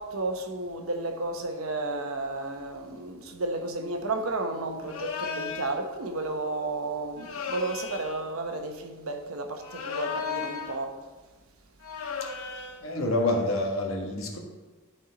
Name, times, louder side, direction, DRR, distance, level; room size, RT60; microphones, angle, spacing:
voice 1, 0.0-11.0, right 2 dB, 70° right, 1.0 m, -32 dB
sound 1, 4.9-5.8 7.2-8.2 9.6-10.8 11.8-12.9, left 5 dB, 80° left, 0.9 m, -35 dB
voice 2, 12.8-14.4, left 1 dB, 65° left, 1.4 m, -27 dB
12.0 x 4.4 x 4.1 m
head